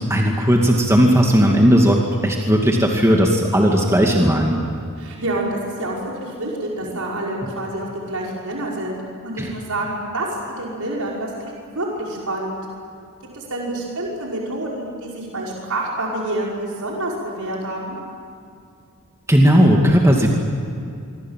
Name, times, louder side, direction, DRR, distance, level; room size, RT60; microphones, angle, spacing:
voice 1, 0.0-4.6 9.4-9.5 19.3-20.3, equal, 15° right, 0 dB, 2.4 m, -16 dB
voice 2, 5.0-9.0 9.2-10.3 10.6-12.6 13.3-18.0, right 1 dB, 75° right, -3 dB, 5.8 m, -27 dB
26.0 x 25.0 x 7.6 m, 2.4 s
head